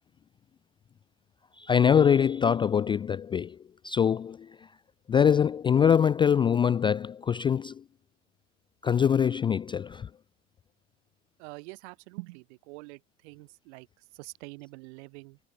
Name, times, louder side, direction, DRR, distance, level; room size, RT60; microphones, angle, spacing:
voice 1, 1.6-3.6 3.8-4.6 5.1-7.8 8.8-10.1, left 8 dB, 15° left, 0.4 m, -23 dB
voice 2, 11.4-15.4, right 27 dB, 60° right, 3.9 m, -45 dB
figure-of-eight pair, 85°, 39 cm